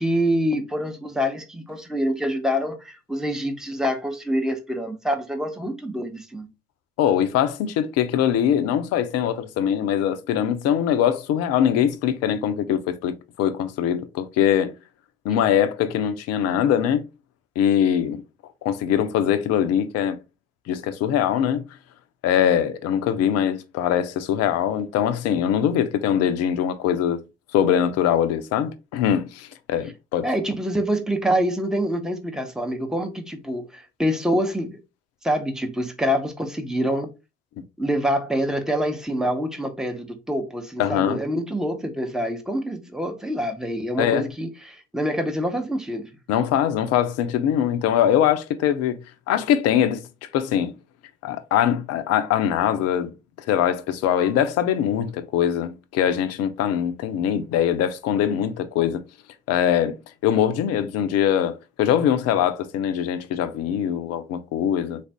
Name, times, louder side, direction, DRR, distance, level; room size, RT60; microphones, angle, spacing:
voice 1, 0.0-6.5 30.2-34.8 35.2-37.1 37.8-46.1, equal, ahead, 0.9 m, -26 dB
voice 2, 7.0-14.7 15.2-17.0 17.6-18.2 18.6-20.2 20.7-21.6 22.2-27.2 27.5-30.3 40.8-41.2 44.0-44.3 46.3-49.0 49.3-50.0 50.3-50.7 51.2-53.1 53.5-59.0 59.5-65.0, left 9 dB, 55° left, 0.6 m, -22 dB
4.0 x 2.5 x 3.4 m
figure-of-eight pair, 45°, 31 cm